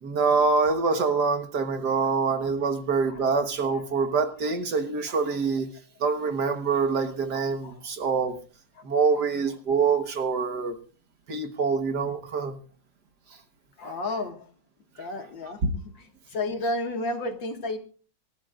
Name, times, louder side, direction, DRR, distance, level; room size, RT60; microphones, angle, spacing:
voice 1, 0.0-5.7 6.0-8.4 8.9-10.8 11.3-12.6 15.0-15.1 15.6-15.7, right 4 dB, 55° right, 1.8 m, -25 dB
voice 2, 7.3-7.8 13.8-14.4 15.0-15.6 16.3-17.8, left 2 dB, 70° left, 2.5 m, -31 dB
26.5 x 14.0 x 2.5 m
omnidirectional pair, 2.2 m